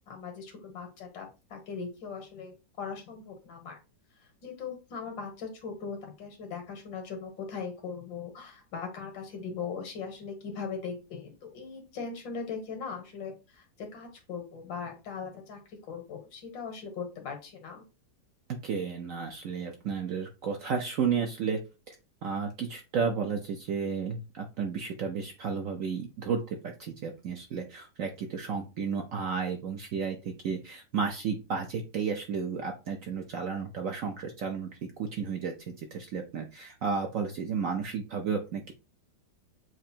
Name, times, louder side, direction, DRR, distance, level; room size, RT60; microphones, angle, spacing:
voice 1, 0.1-3.8 4.4-17.8, left 5 dB, 85° left, 3 dB, 2.0 m, -39 dB
voice 2, 18.6-21.6 21.9-22.0 22.2-34.7 35.0-38.7, right 6 dB, 65° right, 3 dB, 0.8 m, -32 dB
7.5 x 2.5 x 2.8 m, 0.30 s
omnidirectional pair, 2.0 m